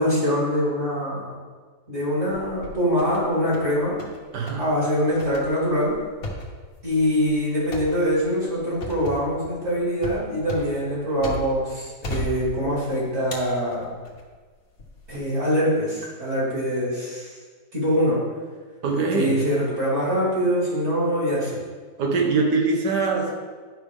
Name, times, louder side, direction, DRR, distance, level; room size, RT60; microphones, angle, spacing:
voice 1, 0.0-1.4 1.9-3.9 4.6-5.9 6.8-13.9 15.1-17.4 17.7-18.3 19.2-21.6, equal, 45° right, -7 dB, 2.8 m, -24 dB
sound 1, 2.3-3.2 3.5-4.2 4.5-4.7 5.2-11.7 12.0-12.9 13.3-14.2 14.8-15.2, left 1 dB, 60° left, 1.7 m, -36 dB
voice 2, 18.8-19.4 22.0-23.4, right 4 dB, 85° right, 2 dB, 1.7 m, -22 dB
11.0 x 5.4 x 3.5 m, 1.5 s
omnidirectional pair, 1.7 m